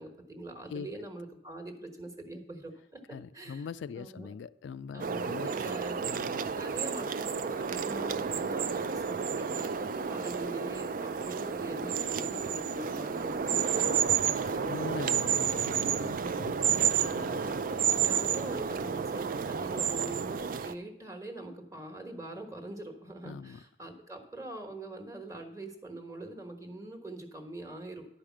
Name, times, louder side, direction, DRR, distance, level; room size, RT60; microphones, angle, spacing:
voice 1, 0.0-3.7 4.0-4.3 4.9-6.0 6.5-14.9 16.1-16.4 17.0-17.6 18.0-28.1, right 2 dB, 15° right, 4 dB, 1.2 m, -43 dB
voice 2, 3.1-5.5 6.1-6.5 14.7-17.4 23.2-23.6, left 6 dB, 75° left, 14 dB, 0.3 m, -42 dB
sound 1, 5.0-20.7, right 7 dB, 50° right, 0.4 m, -31 dB
11.0 x 5.0 x 7.2 m, 0.77 s
head